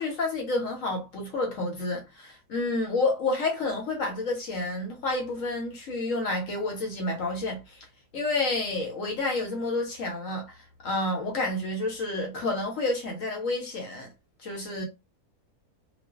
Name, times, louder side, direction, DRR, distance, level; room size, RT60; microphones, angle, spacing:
voice 1, 0.0-7.8 8.1-10.6 10.8-14.1 14.4-14.8, left 2 dB, 65° left, 1.0 m, -29 dB
2.4 x 2.3 x 2.3 m
omnidirectional pair, 1.6 m